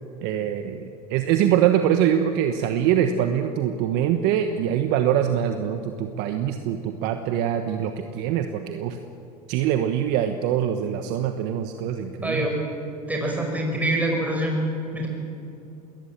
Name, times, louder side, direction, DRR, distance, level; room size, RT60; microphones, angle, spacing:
voice 1, 0.2-9.0 9.5-12.5, right 10 dB, 60° right, 7 dB, 1.3 m, -24 dB
voice 2, 12.2-12.6 13.1-14.6 14.9-15.1, right 1 dB, 10° right, 0 dB, 5.5 m, -25 dB
21.5 x 19.5 x 7.5 m, 2.8 s
hypercardioid pair, 90°, 19 cm